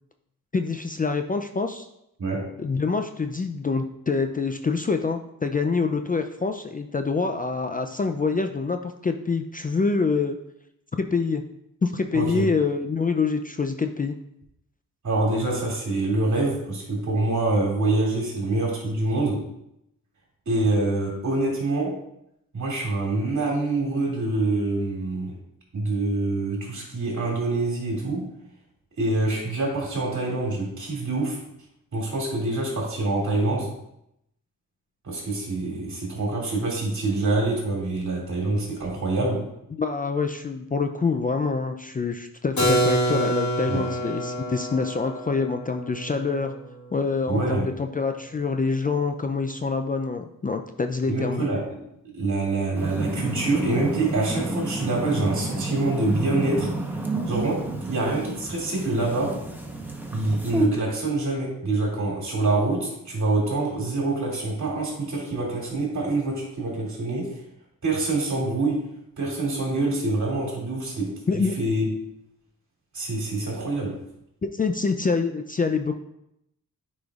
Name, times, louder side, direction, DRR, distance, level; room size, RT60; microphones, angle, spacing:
voice 1, 0.5-1.9 2.6-10.4 11.0-11.4 11.8-14.2 39.7-46.5 46.9-51.5 71.3-71.6 74.4-75.9, left 4 dB, 25° left, 6 dB, 0.4 m, -26 dB
voice 2, 12.1-12.4 15.0-19.4 20.5-21.9 22.5-25.3 25.7-28.2 29.0-31.4 31.9-33.7 35.0-39.4 43.7-43.9 47.3-47.7 51.1-51.8 52.1-56.7 57.3-59.3 60.1-67.3 67.8-68.8 69.2-71.9 72.9-73.9, right 2 dB, 60° right, -3 dB, 2.5 m, -25 dB
Keyboard (musical), 42.6-48.2, right 1 dB, 60° left, 1.5 m, -27 dB
sound 1, 52.7-60.7, right 2 dB, 5° right, 0.9 m, -30 dB
9.2 x 5.0 x 2.4 m, 0.80 s
wide cardioid pair, 80°, 33 cm